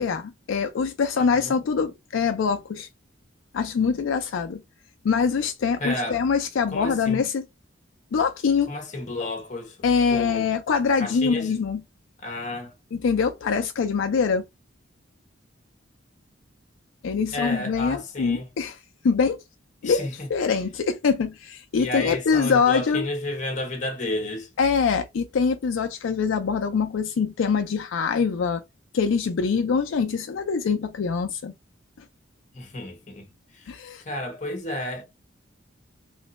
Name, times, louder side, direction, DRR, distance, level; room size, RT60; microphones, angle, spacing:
voice 1, 0.0-2.9 3.5-4.6 5.0-7.4 8.1-8.7 9.8-11.8 12.9-14.4 17.0-18.8 19.0-19.4 19.8-23.0 24.6-28.6 28.9-31.5 33.7-34.0, left 5 dB, 75° left, 0.4 m, -24 dB
voice 2, 1.2-1.6 5.8-6.3 6.7-7.2 8.7-10.5 11.0-11.6 12.2-12.7 17.3-18.5 19.8-20.3 21.7-24.5 32.5-33.3 33.5-33.7 34.0-35.0, left 2 dB, 35° left, 0.8 m, -32 dB
3.1 x 2.1 x 3.9 m
head